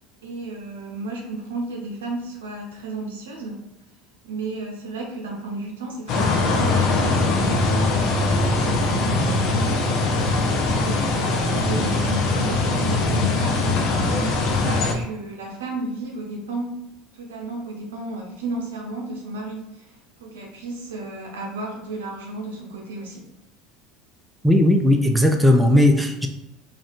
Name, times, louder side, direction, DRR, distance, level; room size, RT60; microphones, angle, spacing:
voice 1, 0.2-3.7 4.2-7.6 8.4-9.5 10.7-13.9 14.2-16.8 17.1-19.9 20.2-23.3, right 2 dB, 80° right, 0 dB, 0.7 m, -33 dB
sound 1, 6.1-14.9, left 2 dB, 55° left, 0.5 m, -21 dB
voice 2, 24.4-26.3, left 1 dB, 5° right, 3 dB, 0.4 m, -17 dB
2.4 x 2.3 x 3.5 m, 0.87 s
hypercardioid pair, 75°, 0 cm